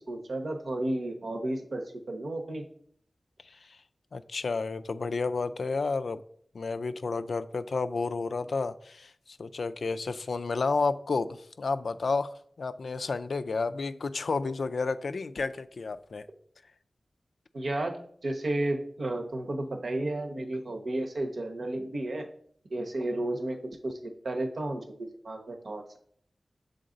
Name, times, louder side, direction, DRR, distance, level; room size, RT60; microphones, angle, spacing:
voice 1, 0.1-2.6 17.5-18.0 18.2-22.3 22.7-26.0, right 1 dB, 80° right, 4 dB, 0.9 m, -32 dB
voice 2, 4.1-6.2 6.5-16.3, left 4 dB, 85° left, 11 dB, 0.3 m, -31 dB
6.5 x 3.9 x 3.8 m, 0.62 s
cardioid pair, 50°, 0 cm